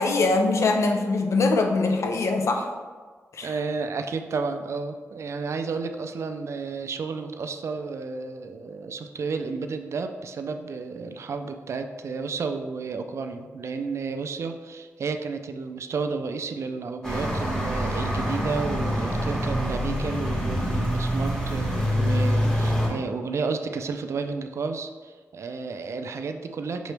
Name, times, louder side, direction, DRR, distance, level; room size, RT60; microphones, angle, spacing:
voice 1, 0.0-2.7 3.3-3.5, left 3 dB, 65° left, 4 dB, 0.5 m, -22 dB
voice 2, 3.4-26.9, right 4 dB, 60° right, 7 dB, 0.4 m, -32 dB
sound 1, 17.0-22.9, equal, 15° left, 1.4 m, -25 dB
5.3 x 3.0 x 3.3 m, 1.5 s
cardioid pair, 65°, 5 cm